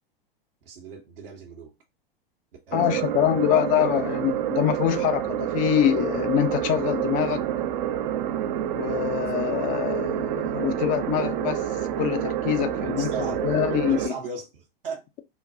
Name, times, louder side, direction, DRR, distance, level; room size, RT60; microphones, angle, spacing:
voice 1, 0.6-1.7 2.7-3.5 4.1-4.2 12.8-15.0, right 5 dB, 70° right, 0.9 m, -38 dB
voice 2, 2.7-7.4 8.7-11.6 12.0-14.1, left 12 dB, 30° left, 0.4 m, -25 dB
sound 1, 2.7-14.1, right 10 dB, 50° right, 0.5 m, -28 dB
3.7 x 2.2 x 2.6 m
figure-of-eight pair, 95°, 29 cm